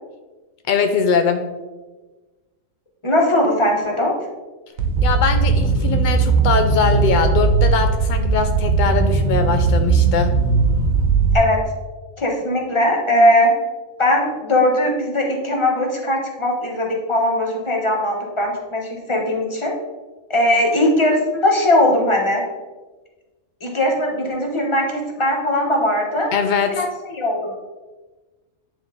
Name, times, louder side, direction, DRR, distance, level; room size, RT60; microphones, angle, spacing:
voice 1, 0.7-1.4 5.0-10.3 26.3-26.9, left 5 dB, 75° left, 6 dB, 0.4 m, -21 dB
voice 2, 3.0-4.1 11.3-11.6 12.2-13.5 14.0-19.7 20.3-22.4 23.6-26.3 26.8-27.6, left 1 dB, 25° left, 0 dB, 1.2 m, -19 dB
sound 1, 4.8-11.3, right 4 dB, 80° right, 1.3 m, -18 dB
9.7 x 3.8 x 3.8 m, 1.2 s
omnidirectional pair, 1.4 m